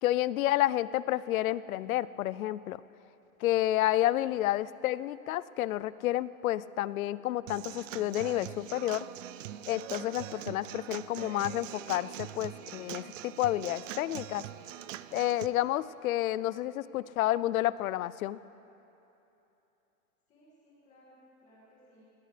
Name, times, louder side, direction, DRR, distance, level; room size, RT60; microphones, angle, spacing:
voice 1, 0.0-2.8 3.4-9.0 9.7-14.4 15.1-18.4, left 14 dB, 75° left, 18 dB, 0.5 m, -30 dB
Human voice / Acoustic guitar / Drum, 7.5-15.5, right 13 dB, 65° right, 0.5 m, -43 dB
voice 2, 20.3-22.0, equal, 15° left, -6 dB, 2.2 m, -60 dB
19.5 x 18.0 x 3.3 m, 3.0 s
supercardioid pair, 170°, 42 cm